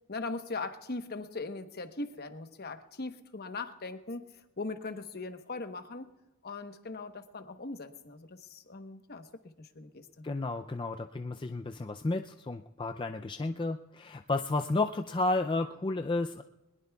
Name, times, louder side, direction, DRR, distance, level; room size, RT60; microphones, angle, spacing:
voice 1, 0.1-4.2 4.6-6.1 6.4-10.3, left 3 dB, 50° left, 8 dB, 1.1 m, -40 dB
voice 2, 10.2-16.4, left 2 dB, 25° left, 6 dB, 0.4 m, -32 dB
21.5 x 20.5 x 2.3 m, 1.0 s
head